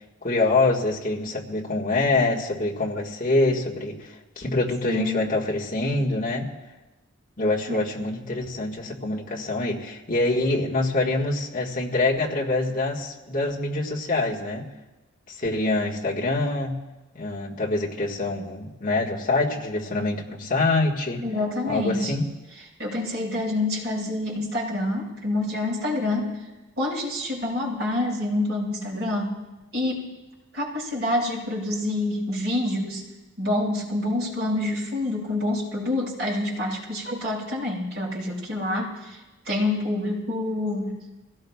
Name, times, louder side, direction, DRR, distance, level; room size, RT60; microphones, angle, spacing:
voice 1, 0.2-6.5 7.4-14.7 15.3-16.8 17.1-21.2 21.7-22.3, left 2 dB, 40° left, -3 dB, 1.7 m, -25 dB
voice 2, 4.8-5.4 7.7-7.8 21.2-22.1 22.6-26.4 26.8-29.4 29.7-30.1 30.5-33.0 33.4-41.0, left 1 dB, 55° right, -4 dB, 5.2 m, -27 dB
25.0 x 17.0 x 2.4 m, 1.1 s
head